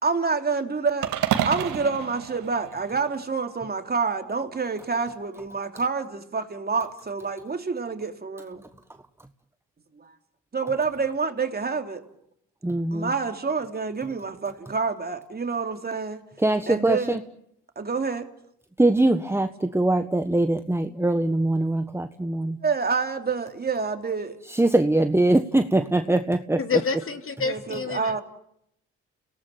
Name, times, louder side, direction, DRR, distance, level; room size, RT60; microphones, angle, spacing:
voice 1, 0.0-1.1 1.4-8.6 10.0-10.1 10.5-12.0 12.9-16.2 16.7-17.2 17.7-18.3 22.6-24.4 27.4-28.2, right 4 dB, 35° right, 6 dB, 3.2 m, -27 dB
sound 1, 1.0-3.4, right 10 dB, 85° right, 2.2 m, -29 dB
voice 2, 12.6-13.1 16.4-17.2 18.8-22.6 24.5-26.6, right 2 dB, 10° right, 8 dB, 1.4 m, -22 dB
voice 3, 26.6-28.2, left 4 dB, 45° left, 7 dB, 3.2 m, -28 dB
29.5 x 18.5 x 9.3 m, 0.76 s
cardioid pair, 75°, 29 cm